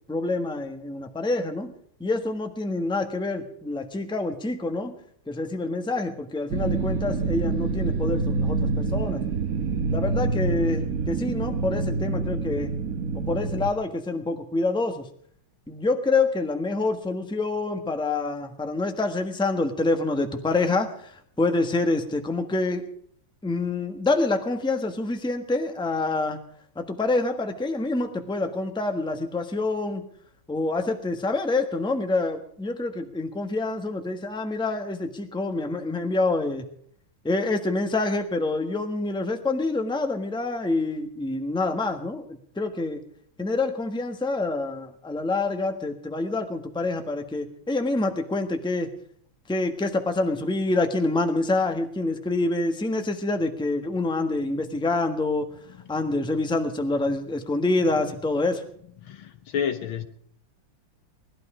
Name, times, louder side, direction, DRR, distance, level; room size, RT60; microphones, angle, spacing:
voice 1, 0.1-1.7 2.0-4.9 5.3-9.2 9.9-12.7 13.1-15.1 15.7-21.1 21.4-22.9 23.4-26.4 26.7-30.1 30.5-36.6 37.2-43.0 43.4-48.9 49.5-55.5 55.9-58.6, left 2 dB, 5° left, 1.1 m, -26 dB
sound 1, 6.5-13.7, right 4 dB, 55° right, 1.3 m, -27 dB
voice 2, 59.0-60.0, left 8 dB, 85° left, 2.1 m, -29 dB
19.5 x 12.5 x 5.0 m
omnidirectional pair, 2.2 m